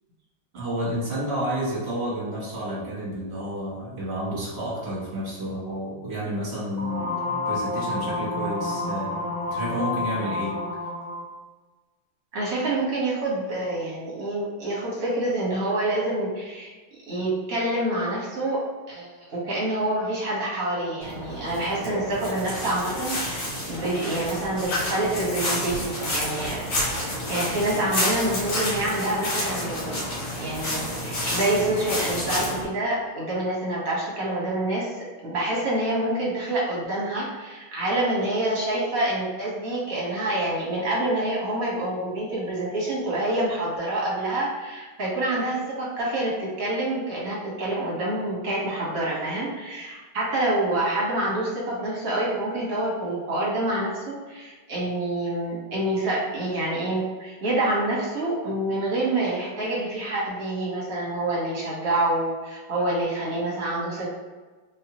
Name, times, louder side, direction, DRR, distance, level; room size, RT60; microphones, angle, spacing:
voice 1, 0.5-7.1 7.4-10.6, equal, 35° right, -8 dB, 1.4 m, -30 dB
sound 1, 6.8-11.3, left 2 dB, 20° left, 0.6 m, -29 dB
voice 2, 12.3-16.7 17.1-18.6 18.9-26.7 27.3-30.0 30.4-64.1, right 1 dB, 50° right, -5 dB, 1.3 m, -27 dB
sound 2, 21.0-32.6, left 1 dB, 80° left, 2.3 m, -29 dB
4.0 x 2.8 x 2.9 m, 1.3 s
omnidirectional pair, 2.4 m